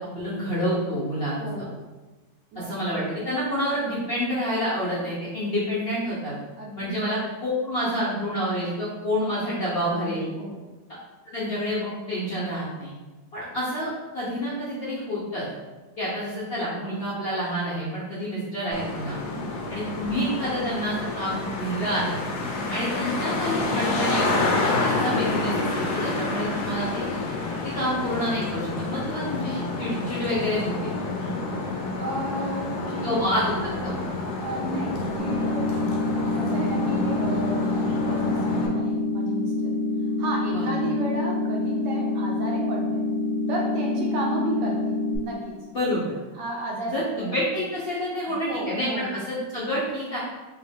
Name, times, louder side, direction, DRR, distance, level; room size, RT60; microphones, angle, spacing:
voice 1, 0.0-1.5 2.5-6.3 6.8-10.3 11.2-12.9 13.3-15.5 16.0-19.2 19.7-22.2 22.7-27.0 27.7-31.0 33.0-34.1 40.5-40.8 45.7-46.2 46.9-50.2, equal, 45° left, -9 dB, 0.8 m, -28 dB
voice 2, 1.4-1.7 2.5-2.7 6.6-7.0 10.4-10.6 19.3-19.6 32.0-33.1 34.4-35.8 36.3-39.7 40.2-43.0 43.5-45.6 46.3-47.3 48.5-49.3, right 1 dB, 75° right, -1 dB, 1.3 m, -33 dB
Traffic noise roadway noise, 18.7-38.7, left 2 dB, 70° left, 1.1 m, -29 dB
sound 1, 35.2-45.2, left 2 dB, 20° left, 1.1 m, -26 dB
3.5 x 2.6 x 3.4 m, 1.2 s
omnidirectional pair, 2.0 m